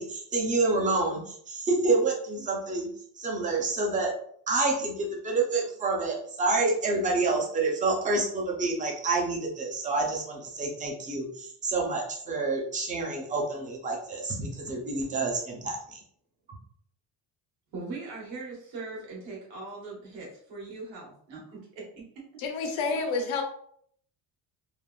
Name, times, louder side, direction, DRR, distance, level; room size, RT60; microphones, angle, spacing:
voice 1, 0.0-2.9 3.2-4.1 4.5-16.0, right 3 dB, 20° right, 0 dB, 0.4 m, -28 dB
voice 2, 17.7-22.0 22.9-23.0, right 3 dB, 70° right, -4 dB, 1.5 m, -40 dB
voice 3, 22.4-23.4, left 4 dB, 85° left, 4 dB, 0.8 m, -29 dB
3.3 x 2.3 x 2.2 m, 0.64 s
cardioid pair, 170°, 46 cm